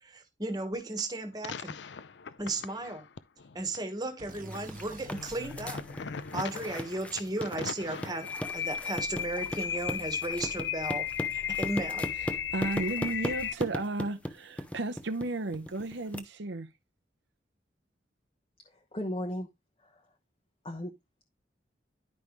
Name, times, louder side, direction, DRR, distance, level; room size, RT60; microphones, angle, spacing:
voice 1, 0.0-1.8 2.4-3.1 3.5-5.8 6.3-12.1, right 2 dB, 20° right, 1.5 m, -35 dB
sound 1, 1.4-3.8 4.3-13.5, left 8 dB, 80° left, 0.6 m, -36 dB
sound 2, 4.2-7.9, right 2 dB, 50° right, 1.2 m, -51 dB
sound 3, 4.3-16.2, equal, 5° left, 0.8 m, -39 dB
voice 2, 12.2-16.7, right 2 dB, 85° right, 0.8 m, -34 dB
voice 3, 18.6-19.5 19.8-20.0 20.6-20.9, left 1 dB, 30° left, 1.0 m, -36 dB
10.5 x 5.5 x 3.2 m
head